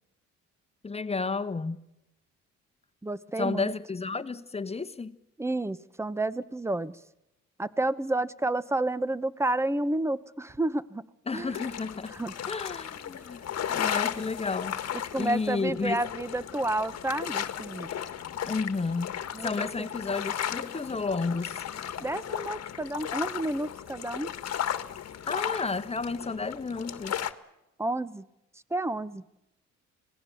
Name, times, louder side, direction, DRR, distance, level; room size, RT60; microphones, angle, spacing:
voice 1, 0.8-1.8 3.4-5.2 11.3-12.1 12.5-13.4 13.7-16.0 18.5-21.7 25.3-27.3, left 4 dB, 20° left, 1.3 m, -32 dB
voice 2, 3.0-3.7 5.4-7.0 7.6-11.0 11.3-11.5 12.1-12.3 14.9-17.9 19.3-19.9 22.0-24.3 27.8-28.3 28.7-29.2, right 2 dB, 10° right, 1.0 m, -30 dB
sound 1, 11.3-27.3, left 9 dB, 55° left, 1.5 m, -35 dB
26.0 x 18.5 x 7.2 m
cardioid pair, 90°, 30 cm